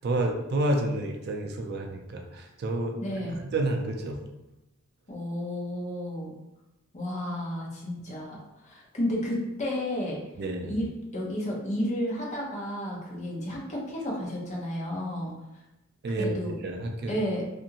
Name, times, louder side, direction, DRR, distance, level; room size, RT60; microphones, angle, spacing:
voice 1, 0.0-3.0 3.3-4.2 10.4-10.7 16.0-16.4 16.6-17.2, right 1 dB, 50° right, 3 dB, 0.4 m, -29 dB
voice 2, 3.0-3.4 5.1-6.3 6.9-10.2 10.7-15.3 16.2-16.5 17.1-17.4, equal, 35° left, -3 dB, 0.7 m, -32 dB
2.7 x 2.5 x 2.8 m, 0.96 s
head